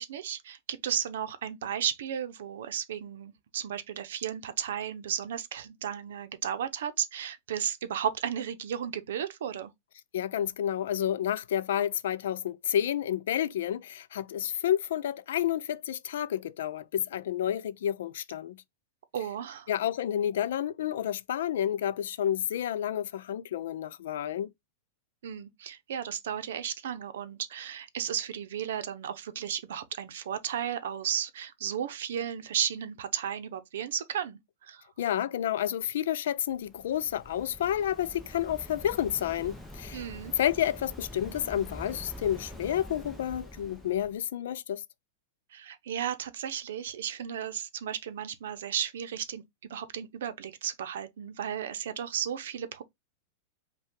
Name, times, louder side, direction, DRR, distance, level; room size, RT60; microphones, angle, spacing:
voice 1, 0.0-9.7 19.1-19.7 25.2-34.4 34.7-34.8 39.9-40.3 45.5-49.4 49.7-52.8, right 9 dB, 75° right, 0.6 m, -34 dB
voice 2, 10.1-18.6 19.7-24.5 35.0-40.0 40.4-44.8, left 10 dB, 70° left, 0.4 m, -30 dB
Waves surf, 36.5-44.1, equal, ahead, 0.7 m, -45 dB
5.4 x 2.3 x 3.6 m
supercardioid pair, 170°, 0 cm